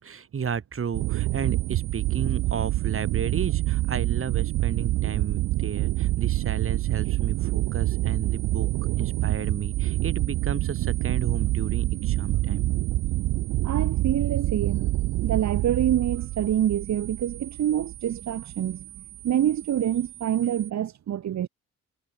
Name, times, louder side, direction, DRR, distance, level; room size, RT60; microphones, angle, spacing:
voice 1, 0.0-12.7, right 7 dB, 45° right, 6.1 m, -33 dB
sound 1, 0.9-20.7, right 17 dB, 90° right, 1.4 m, -27 dB
voice 2, 13.6-14.9 15.2-21.5, right 10 dB, 65° right, 2.6 m, -26 dB
cardioid pair, 90°, 30 cm